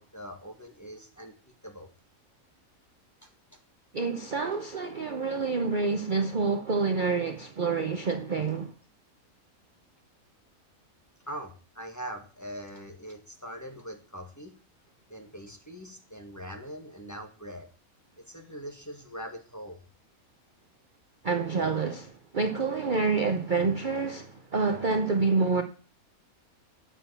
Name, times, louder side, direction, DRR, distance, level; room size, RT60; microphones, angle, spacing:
voice 1, 0.0-1.9 3.2-3.6 11.3-14.6 15.1-17.7 18.3-19.8, equal, 10° left, 1.7 m, -42 dB
voice 2, 3.9-8.7 21.2-25.6, right 4 dB, 40° right, 0.9 m, -27 dB
9.2 x 7.4 x 6.9 m
omnidirectional pair, 1.5 m